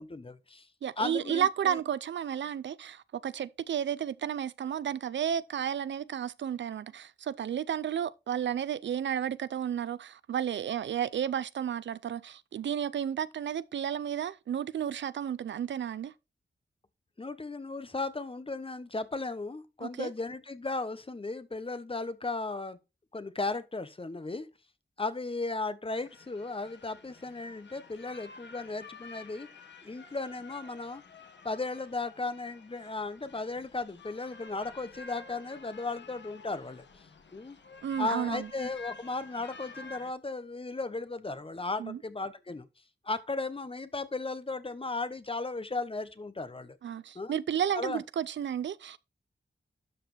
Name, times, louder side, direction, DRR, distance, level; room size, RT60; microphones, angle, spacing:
voice 1, 0.0-0.7 1.0-1.8 17.2-22.8 23.1-24.5 25.0-29.5 29.8-31.0 31.4-36.8 37.3-37.6 38.0-42.7 43.0-46.8 47.1-47.4 47.7-48.0, left 3 dB, 30° left, 1.0 m, -36 dB
voice 2, 0.8-16.1 19.8-20.1 37.8-38.5 41.8-42.0 46.8-49.0, right 9 dB, 85° right, 0.4 m, -32 dB
sound 1, 25.9-40.1, left 4 dB, 75° left, 1.3 m, -51 dB
12.0 x 5.1 x 3.3 m
cardioid pair, 60°, 19 cm